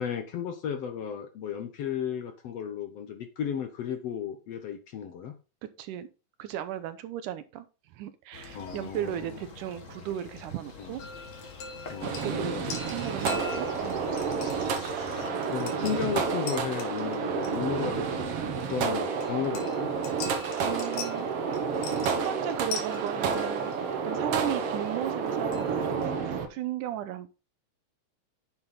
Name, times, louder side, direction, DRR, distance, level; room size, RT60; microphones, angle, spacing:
voice 1, 0.0-5.3 8.6-9.4 10.8-10.9 11.9-12.7 15.2-18.4 18.7-19.9 24.3-24.5, left 8 dB, 65° left, 1.8 m, -34 dB
voice 2, 5.6-6.1 6.4-7.7 7.9-11.0 12.0-14.1 20.6-21.3 22.2-23.7 24.0-27.3, right 11 dB, 75° right, 2.2 m, -36 dB
sound 1, 8.3-15.3, left 4 dB, 35° left, 1.4 m, -45 dB
sound 2, 11.0-25.9, left 4 dB, 85° left, 3.3 m, -43 dB
sound 3, 12.0-26.5, right 5 dB, 55° right, 1.8 m, -30 dB
10.5 x 7.2 x 3.9 m
omnidirectional pair, 3.8 m